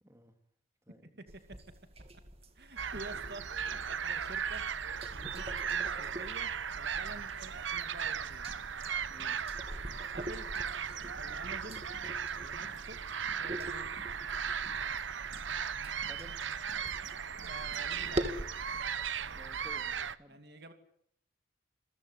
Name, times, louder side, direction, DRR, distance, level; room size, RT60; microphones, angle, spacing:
voice 1, 0.0-0.4 0.9-1.3 8.7-9.4 16.1-16.4 19.3-20.4, equal, 15° right, 7 dB, 2.4 m, -55 dB
sound 1, 1.3-18.5, right 1 dB, 30° right, 2.2 m, -45 dB
voice 2, 2.5-4.6 5.1-8.5 10.1-10.5 11.1-11.9 12.3-13.0 13.4-14.0 17.4-18.3 20.3-20.7, right 2 dB, 55° right, 7 dB, 2.5 m, -49 dB
sound 2, 2.8-20.2, right 7 dB, 75° right, 1.0 m, -37 dB
sound 3, 8.0-19.0, equal, 35° left, 6.7 m, -61 dB
27.0 x 22.0 x 8.3 m, 0.67 s
head